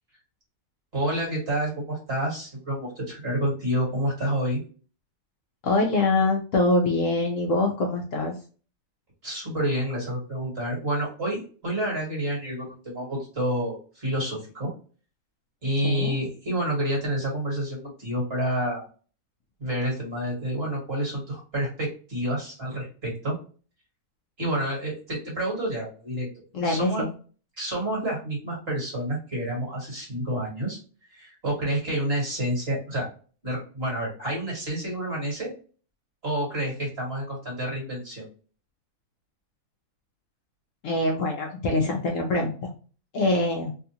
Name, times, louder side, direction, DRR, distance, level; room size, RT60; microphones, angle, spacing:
voice 1, 0.9-4.6 9.2-14.7 15.6-18.8 19.6-23.3 24.4-26.3 26.6-27.0 27.6-30.8 31.1-33.1 33.4-35.5 36.2-38.3, right 1 dB, 40° right, -3 dB, 1.9 m, -29 dB
voice 2, 5.6-8.4 15.8-16.2 26.5-27.1 40.8-42.7 43.1-43.7, left 2 dB, 65° left, 1 dB, 0.9 m, -24 dB
3.4 x 2.4 x 2.8 m, 0.38 s
omnidirectional pair, 1.7 m